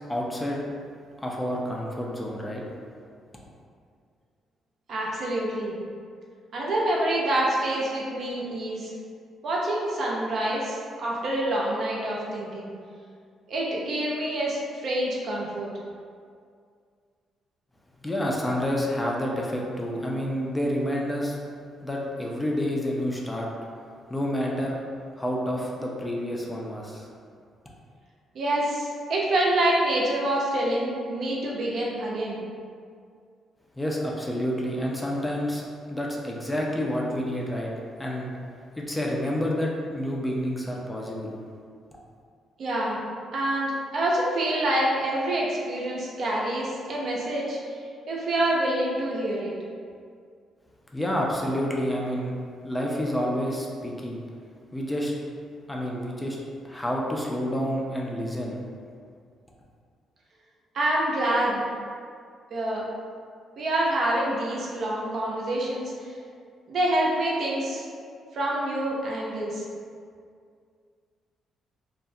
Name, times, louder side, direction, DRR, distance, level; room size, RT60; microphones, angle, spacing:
voice 1, 0.1-0.6 1.2-2.6 18.0-21.4 21.8-23.5 24.1-24.8 25.2-27.1 33.8-35.6 35.9-37.7 38.0-38.3 38.8-41.3 50.9-52.3 52.6-54.2 54.7-55.1 55.7-56.4 56.6-58.6, equal, 10° left, -2 dB, 0.3 m, -29 dB
voice 2, 4.9-5.8 6.5-8.9 9.4-12.7 13.5-15.7 28.3-32.4 42.6-43.0 43.3-47.6 48.1-49.5 60.7-61.6 62.5-62.8 63.6-66.1 66.7-67.9 68.3-69.6, right 1 dB, 60° right, -4 dB, 0.5 m, -26 dB
2.3 x 2.0 x 2.6 m, 2.2 s
cardioid pair, 90°, 0 cm